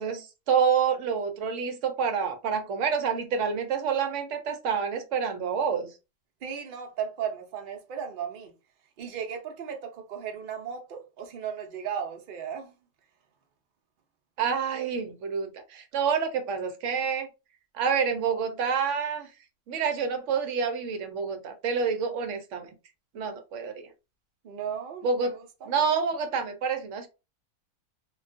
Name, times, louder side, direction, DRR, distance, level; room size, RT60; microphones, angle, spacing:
voice 1, 0.0-5.9 14.4-17.3 17.7-19.3 19.7-22.7 23.1-23.9 25.0-25.4 25.7-27.1, right 6 dB, 65° right, 0.7 m, -28 dB
voice 2, 6.4-8.5 9.0-12.7 24.4-25.7, right 8 dB, 90° right, 0.4 m, -36 dB
2.4 x 2.2 x 2.5 m
omnidirectional pair, 1.6 m